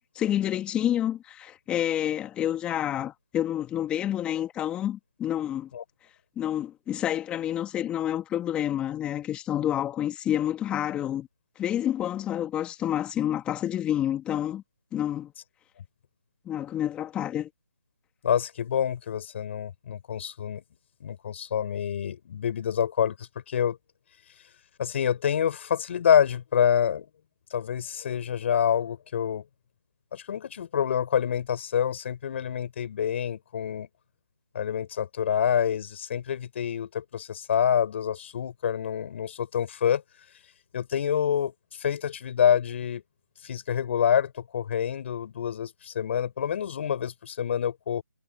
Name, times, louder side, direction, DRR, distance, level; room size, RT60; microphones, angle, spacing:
voice 1, 0.0-5.7 6.4-11.3 11.6-14.6 14.9-15.3 16.5-17.5, left 11 dB, 10° left, 2.6 m, -28 dB
voice 2, 18.2-20.6 21.0-23.2 23.5-23.8 24.8-27.1 27.5-29.4 30.1-33.9 34.5-40.0 40.7-41.5 41.8-43.0 43.4-48.0, left 8 dB, 35° left, 5.9 m, -27 dB
figure-of-eight pair, 155°, 11 cm